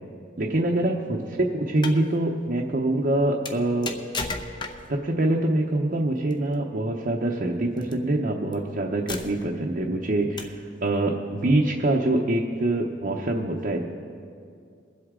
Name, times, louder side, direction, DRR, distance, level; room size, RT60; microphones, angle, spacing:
voice 1, 0.4-3.9 4.9-13.8, right 1 dB, 50° right, -1 dB, 0.8 m, -25 dB
sound 1, 1.6-2.0 3.4-5.0 6.3-6.5 7.8-7.9 8.5-8.6 9.1-9.6 10.4-10.7, left 3 dB, 25° left, 0.8 m, -34 dB
23.5 x 8.0 x 3.7 m, 2.4 s
head